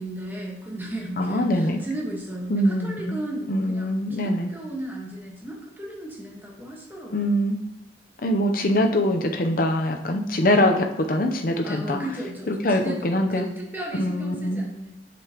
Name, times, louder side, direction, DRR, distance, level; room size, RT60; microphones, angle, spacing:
voice 1, 0.0-7.3 11.6-14.9, right 1 dB, 10° right, -2 dB, 1.4 m, -35 dB
voice 2, 1.2-1.8 2.5-3.2 3.5-4.5 7.1-7.6 8.2-12.0 12.5-13.5 14.0-14.6, left 1 dB, 50° left, 4 dB, 0.7 m, -23 dB
7.8 x 6.9 x 3.0 m, 0.80 s
head